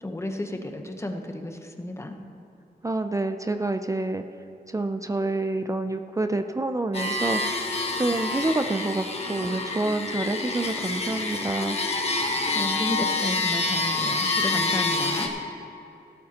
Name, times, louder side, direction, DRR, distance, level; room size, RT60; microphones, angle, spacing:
voice 1, 0.0-2.2 12.5-15.3, left 1 dB, 15° left, 5 dB, 0.9 m, -32 dB
voice 2, 2.8-4.2 4.7-7.6 8.0-11.8, right 2 dB, 20° right, 7 dB, 0.4 m, -27 dB
sound 1, 6.9-15.3, left 3 dB, 35° left, 1.3 m, -27 dB
17.0 x 12.5 x 2.9 m, 2.9 s
wide cardioid pair, 135°, 17 cm